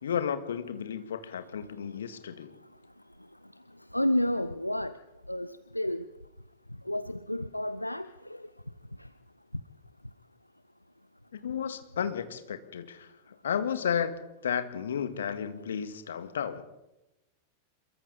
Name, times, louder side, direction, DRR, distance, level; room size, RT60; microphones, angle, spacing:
voice 1, 0.0-2.5 11.4-13.1 13.4-14.1 14.4-16.6, left 8 dB, 65° left, 9 dB, 1.9 m, -32 dB
voice 2, 3.9-4.9 5.3-6.0 6.9-8.1, left 1 dB, 85° left, 14 dB, 0.6 m, -30 dB
27.5 x 23.0 x 4.1 m, 0.95 s
figure-of-eight pair, 90°, 0 cm